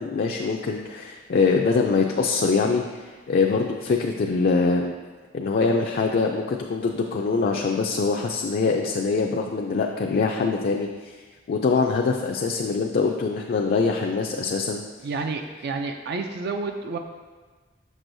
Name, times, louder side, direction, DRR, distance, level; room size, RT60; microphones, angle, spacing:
voice 1, 0.0-4.9 5.3-11.2 11.5-14.8, left 4 dB, 50° left, 1 dB, 0.4 m, -23 dB
voice 2, 15.0-17.0, right 4 dB, 55° right, 5 dB, 0.4 m, -30 dB
6.1 x 6.1 x 2.6 m, 1.4 s
head